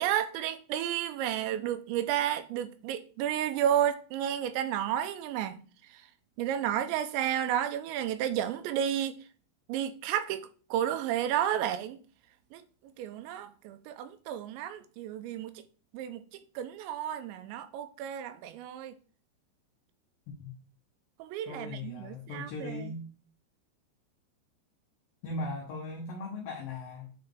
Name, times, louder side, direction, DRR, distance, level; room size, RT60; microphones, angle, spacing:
voice 1, 0.0-5.6 5.9-6.0 6.4-9.2 9.7-12.0 12.5-12.6 13.0-15.5 15.9-18.9 21.2-22.9, right 10 dB, 85° right, 2.9 m, -32 dB
voice 2, 21.5-23.0 25.2-27.1, left 2 dB, 80° left, 2.0 m, -38 dB
9.0 x 4.0 x 3.6 m
omnidirectional pair, 5.2 m